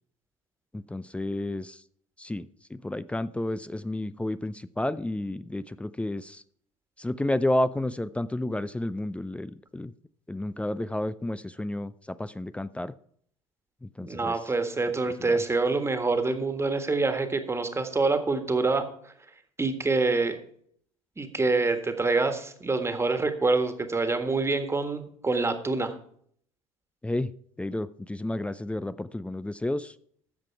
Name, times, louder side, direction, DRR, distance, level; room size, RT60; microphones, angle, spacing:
voice 1, 0.7-1.8 2.2-6.4 7.0-9.9 10.3-12.9 13.8-14.4 15.2-15.4 27.0-29.9, left 1 dB, 5° left, 15 dB, 0.4 m, -31 dB
voice 2, 14.0-19.1 19.6-20.4 21.2-25.9, right 3 dB, 15° right, 7 dB, 1.6 m, -26 dB
13.0 x 7.6 x 4.6 m, 0.63 s
figure-of-eight pair, 65°, 17 cm